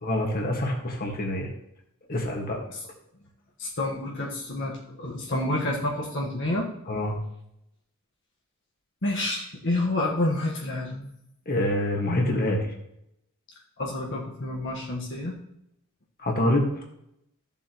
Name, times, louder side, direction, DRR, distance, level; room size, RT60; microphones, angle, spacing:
voice 1, 0.0-1.5 2.1-2.6 6.9-7.2 11.4-12.7 16.2-16.7, left 1 dB, 40° left, 1 dB, 1.7 m, -26 dB
voice 2, 3.6-6.7 9.0-11.1 13.8-15.3, left 1 dB, 55° left, -3 dB, 1.5 m, -29 dB
14.0 x 7.3 x 3.0 m, 0.79 s
head